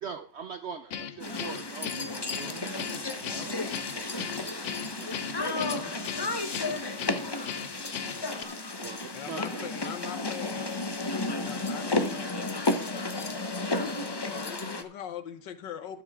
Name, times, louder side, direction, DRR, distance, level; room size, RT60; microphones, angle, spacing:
voice 1, 0.0-2.7 3.9-4.6 5.0-5.2 8.8-9.9, right 6 dB, 80° right, 0.6 m, -42 dB
Guitar, 0.9-8.4, left 8 dB, 60° left, 0.8 m, -38 dB
sound 1, 1.2-14.8, left 2 dB, 35° left, 0.4 m, -33 dB
voice 2, 1.9-3.6 5.2-6.1 7.0-7.1, right 5 dB, 60° right, 1.9 m, -48 dB
voice 3, 9.1-10.7 11.4-16.0, left 8 dB, 75° left, 1.6 m, -41 dB
12.5 x 9.6 x 3.6 m
omnidirectional pair, 2.0 m